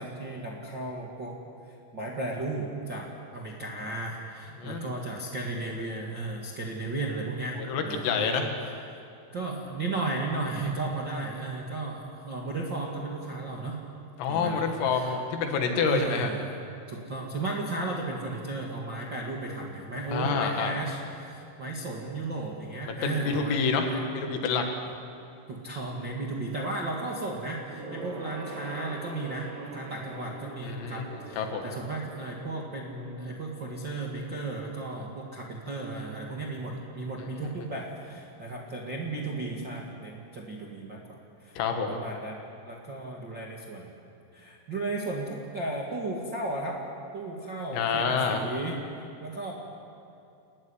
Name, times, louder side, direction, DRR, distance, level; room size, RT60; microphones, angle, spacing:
voice 1, 0.0-1.4 1.9-3.1 3.3-7.6 7.8-8.5 9.3-13.8 14.3-15.2 15.8-24.0 25.5-41.6 41.9-43.9 44.3-46.8 47.1-48.8 49.2-49.5, right 2 dB, 50° right, -2 dB, 1.4 m, -35 dB
voice 2, 4.6-4.9 7.6-8.5 14.2-16.3 20.1-20.7 22.8-24.6 30.6-31.7 41.6-42.0 47.7-48.4, left 5 dB, 90° left, 4 dB, 4.8 m, -28 dB
Gong, 27.7-37.5 37.8-38.0 38.3-38.4, right 3 dB, 80° right, 6.3 m, -45 dB
30.0 x 15.0 x 9.9 m, 2.6 s
omnidirectional pair, 5.8 m